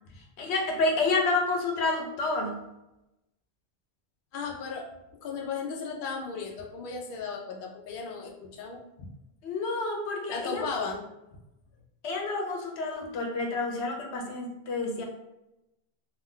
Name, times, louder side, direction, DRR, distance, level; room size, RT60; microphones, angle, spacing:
voice 1, 0.4-2.6 9.4-10.7 12.0-15.1, left 3 dB, 85° left, 2 dB, 0.9 m, -29 dB
voice 2, 4.3-4.9 5.2-9.1 10.3-11.1, left 5 dB, 60° left, 0 dB, 0.7 m, -35 dB
2.4 x 2.1 x 3.6 m, 0.93 s
omnidirectional pair, 1.1 m